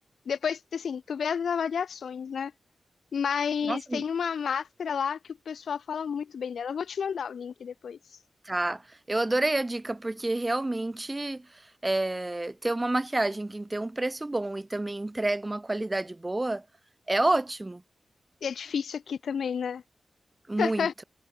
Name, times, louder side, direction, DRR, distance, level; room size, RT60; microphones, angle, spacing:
voice 1, 0.3-2.5 3.1-5.2 5.5-8.0 18.4-19.8 20.6-20.9, left 7 dB, 90° left, 1.0 m, -30 dB
voice 2, 3.6-4.0 8.5-8.8 9.1-16.6 17.1-17.8 20.5-21.0, right 2 dB, 20° right, 2.3 m, -29 dB
wide cardioid pair, 100°, 0 cm